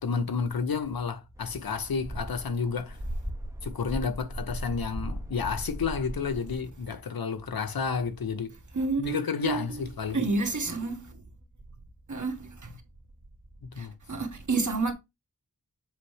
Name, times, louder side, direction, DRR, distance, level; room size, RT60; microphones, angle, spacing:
voice 1, 0.0-3.0 3.6-8.5 9.0-10.3 13.6-13.9, left 5 dB, 80° left, 0.9 m, -31 dB
sound 1, 1.4-6.6, right 1 dB, 10° right, 0.8 m, -37 dB
voice 2, 8.7-9.6 10.1-11.1 12.1-12.5 13.8-14.9, right 3 dB, 55° right, 1.5 m, -29 dB
7.4 x 4.2 x 3.3 m
wide cardioid pair, 85°, 35 cm